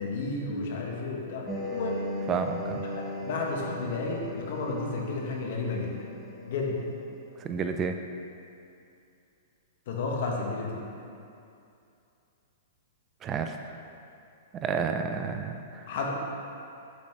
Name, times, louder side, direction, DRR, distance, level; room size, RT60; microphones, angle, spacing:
voice 1, 0.0-2.0 2.9-5.9 6.5-6.9 9.9-10.8 15.2-15.3 15.9-16.1, left 3 dB, 60° left, -1 dB, 1.0 m, -32 dB
sound 1, 1.5-7.0, left 1 dB, 5° left, 1.1 m, -38 dB
voice 2, 2.3-2.8 7.4-8.0 13.2-13.6 14.5-15.9, right 6 dB, 25° right, 6 dB, 0.3 m, -30 dB
7.1 x 4.0 x 3.3 m, 2.6 s
hypercardioid pair, 125°, 0 cm